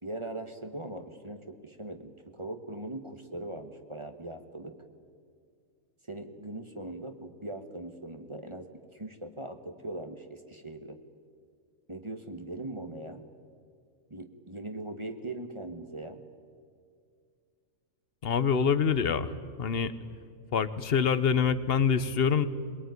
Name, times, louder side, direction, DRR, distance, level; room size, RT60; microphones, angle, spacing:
voice 1, 0.0-4.8 6.1-11.0 11.9-13.2 14.1-16.2, right 2 dB, 20° right, 7 dB, 1.3 m, -40 dB
voice 2, 18.2-19.9 20.5-22.5, left 6 dB, 45° left, 14 dB, 1.0 m, -26 dB
22.0 x 21.5 x 9.5 m, 2.2 s
omnidirectional pair, 1.6 m